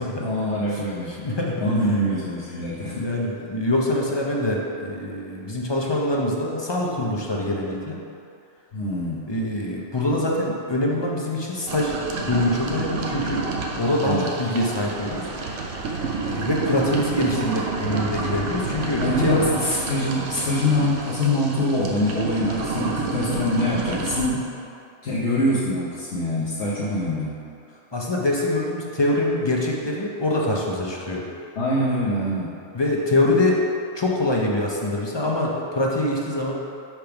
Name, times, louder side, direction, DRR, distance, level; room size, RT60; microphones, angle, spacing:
voice 1, 0.2-1.1 1.6-3.0 8.7-9.2 14.0-14.3 19.0-24.4 25.0-27.3 31.6-32.5, left 1 dB, 70° left, -8 dB, 1.1 m, -24 dB
voice 2, 1.1-1.6 2.9-8.0 9.3-12.0 12.3-13.5 13.8-15.3 16.2-19.5 27.9-31.3 32.7-33.6 33.9-36.5, left 1 dB, 35° left, -3 dB, 0.4 m, -24 dB
sound 1, 11.7-24.3, right 3 dB, 80° right, 1.0 m, -29 dB
sound 2, 14.7-21.2, right 2 dB, 55° right, 0.8 m, -38 dB
5.9 x 3.4 x 5.7 m, 2.5 s
omnidirectional pair, 1.2 m